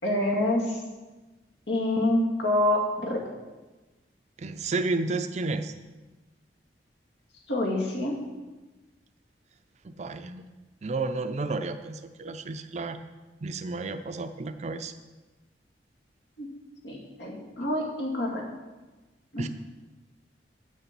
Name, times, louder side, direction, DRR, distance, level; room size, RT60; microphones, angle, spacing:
voice 1, 0.0-0.8 1.7-3.2 7.5-8.2 16.4-16.5 16.8-18.4 19.3-19.5, left 1 dB, 85° left, -2 dB, 2.3 m, -27 dB
voice 2, 4.4-5.7 9.8-10.5 10.8-13.0 13.4-14.9 19.4-19.5, right 3 dB, 40° right, 9 dB, 0.4 m, -31 dB
8.5 x 6.8 x 6.0 m, 1.2 s
head